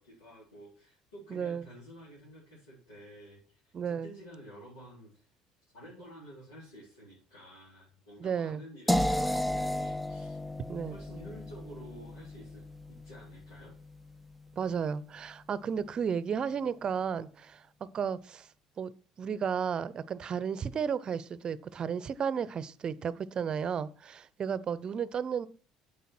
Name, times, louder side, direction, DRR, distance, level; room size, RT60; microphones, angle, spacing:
voice 1, 0.0-5.3 5.7-10.4 10.8-13.7, equal, 85° left, 4.1 m, -51 dB
voice 2, 1.3-1.6 3.7-4.1 8.2-8.6 10.7-11.0 14.6-17.6 17.9-18.5 18.8-18.9 19.2-25.5, right 7 dB, 40° right, 0.7 m, -33 dB
sound 1, 8.9-14.8, left 1 dB, ahead, 0.5 m, -34 dB
9.2 x 8.0 x 4.4 m
hypercardioid pair, 60°, 2 cm